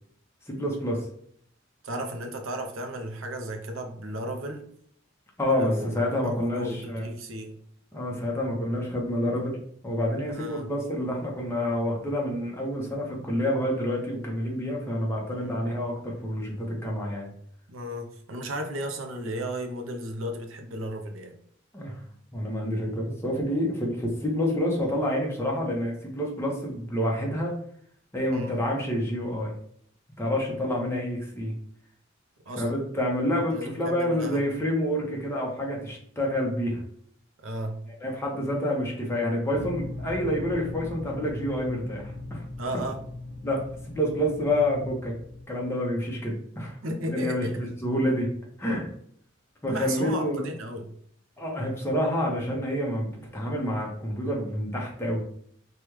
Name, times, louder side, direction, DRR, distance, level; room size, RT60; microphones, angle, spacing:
voice 1, 0.5-1.1 5.4-7.1 7.9-9.6 9.8-17.3 21.7-22.0 22.3-27.5 28.1-29.5 30.2-31.5 32.6-36.8 38.0-42.4 43.4-45.1 45.5-46.8 47.1-48.3 48.6-48.9 49.6-50.5 51.4-55.2, left 1 dB, 15° left, -2 dB, 0.8 m, -28 dB
voice 2, 1.8-4.6 5.6-5.9 6.2-7.6 10.3-10.7 15.3-15.6 17.7-21.3 28.3-28.6 32.5-32.6 33.5-34.4 37.4-37.8 42.6-43.0 46.8-47.5 49.7-50.9, right 1 dB, 80° right, 5 dB, 0.6 m, -34 dB
sound 1, 39.5-45.4, left 2 dB, 50° right, 0.9 m, -39 dB
3.3 x 2.3 x 3.0 m, 0.62 s
head